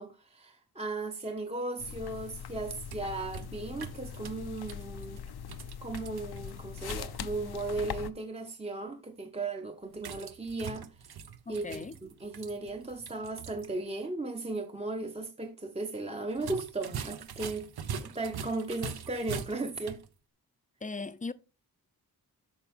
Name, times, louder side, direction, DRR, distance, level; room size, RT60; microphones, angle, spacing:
voice 1, 0.0-5.2 5.8-11.2 11.5-17.7 18.0-20.0, right 2 dB, 15° right, 0.7 m, -36 dB
sound 1, 1.8-8.1, left 9 dB, 90° left, 0.6 m, -41 dB
sound 2, 2.6-7.4 10.0-13.7 14.0-14.1 16.3-20.1, right 6 dB, 80° right, 0.8 m, -43 dB
voice 2, 11.5-12.0 20.8-21.3, left 3 dB, 20° left, 0.5 m, -38 dB
8.9 x 6.0 x 3.5 m
wide cardioid pair, 105°, 37 cm